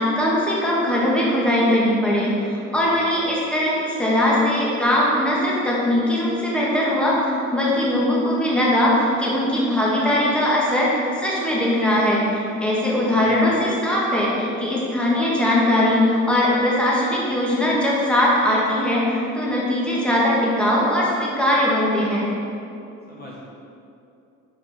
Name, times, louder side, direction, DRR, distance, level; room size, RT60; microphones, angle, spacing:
voice 1, 0.0-22.3, left 1 dB, 5° left, -6 dB, 1.7 m, -20 dB
voice 2, 13.1-13.5 23.1-23.4, left 1 dB, 30° left, -5 dB, 1.4 m, -40 dB
6.4 x 4.8 x 5.0 m, 2.7 s
cardioid pair, 90°, 30 cm